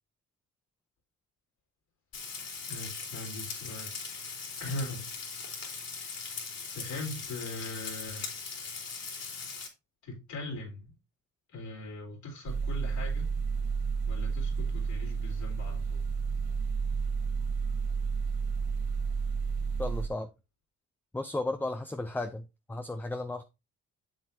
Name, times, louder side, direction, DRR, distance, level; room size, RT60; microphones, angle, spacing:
Frying (food), 2.1-9.7, left 5 dB, 55° left, 3.2 m, -40 dB
voice 1, 2.6-4.2 4.6-5.1 6.7-8.3 10.0-10.9 11.5-13.4 14.1-16.1, left 2 dB, 75° left, 4.0 m, -40 dB
sound 1, 12.5-20.1, right 5 dB, 90° right, 2.4 m, -31 dB
voice 2, 19.8-20.3 21.1-23.4, left 2 dB, 5° left, 0.5 m, -34 dB
7.6 x 7.2 x 2.8 m
cardioid pair, 90°, 30 cm